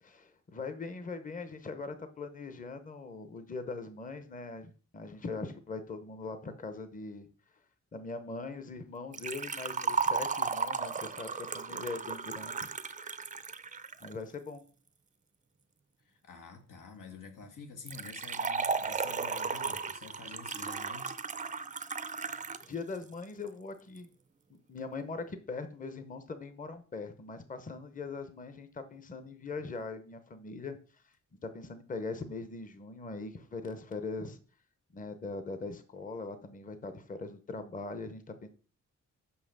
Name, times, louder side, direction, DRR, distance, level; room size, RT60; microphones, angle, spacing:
voice 1, 0.0-7.3 7.9-12.7 14.0-14.6 22.2-24.1 24.5-30.8 31.4-34.4 34.9-38.5, left 3 dB, 25° left, 0.7 m, -41 dB
Liquid, 9.1-14.1 17.9-22.7 23.0-23.1 24.0-24.1, right 5 dB, 25° right, 0.4 m, -35 dB
voice 2, 16.0-21.2, left 4 dB, 90° left, 1.6 m, -48 dB
5.8 x 5.6 x 6.5 m
wide cardioid pair, 155°, 31 cm